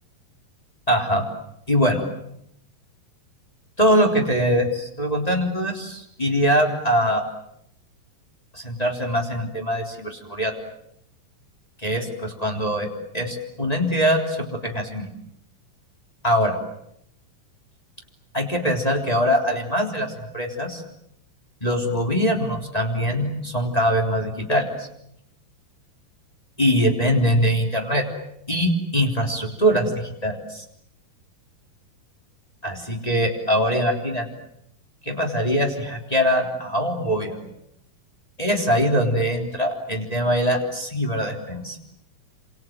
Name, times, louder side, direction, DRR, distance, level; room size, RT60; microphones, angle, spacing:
voice 1, 0.9-1.2 1.7-2.0 3.8-7.2 8.5-10.5 11.8-12.9 13.1-15.1 16.2-16.6 18.3-20.8 21.6-24.9 26.6-28.1 28.5-30.6 32.6-34.3 35.0-37.4 38.4-41.8, equal, 10° left, 1 dB, 3.4 m, -22 dB
28.0 x 27.0 x 7.6 m, 0.76 s
omnidirectional pair, 4.0 m